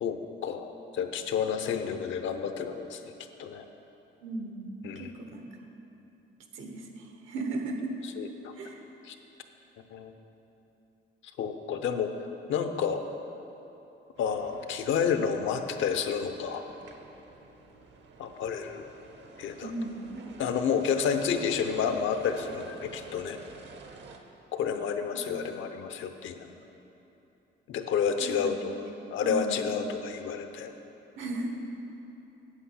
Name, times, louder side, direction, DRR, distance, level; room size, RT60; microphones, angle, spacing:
voice 1, 0.0-3.0 3.4-3.6 4.8-5.1 8.2-8.5 9.0-9.2 9.9-10.1 11.4-12.1 12.5-13.0 14.2-16.7 18.2-18.8 19.4-19.7 20.4-23.4 24.5-26.5 27.7-28.7 29.1-30.7, left 7 dB, 75° left, 7 dB, 0.7 m, -30 dB
voice 2, 4.2-5.4 6.5-7.9 8.6-8.8 19.6-20.3 25.2-25.4 28.4-28.5 29.2-29.7 31.2-31.5, right 2 dB, 80° right, 3 dB, 1.2 m, -36 dB
sound 1, 14.2-24.2, right 4 dB, 65° right, 0.9 m, -49 dB
8.2 x 8.2 x 5.7 m, 3.0 s
cardioid pair, 90°, 20 cm